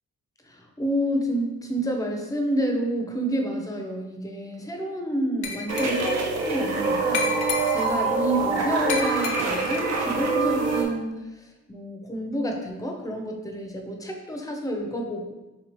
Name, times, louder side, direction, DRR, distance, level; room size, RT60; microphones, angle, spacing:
voice 1, 0.4-15.3, right 1 dB, 10° left, 3 dB, 0.6 m, -29 dB
Glass, 5.4-6.2 7.1-8.1 8.9-9.8, left 5 dB, 80° left, 0.6 m, -31 dB
sound 1, 5.7-10.8, right 3 dB, 60° right, 0.8 m, -25 dB
3.8 x 2.9 x 3.0 m, 1.1 s
cardioid pair, 90°, 30 cm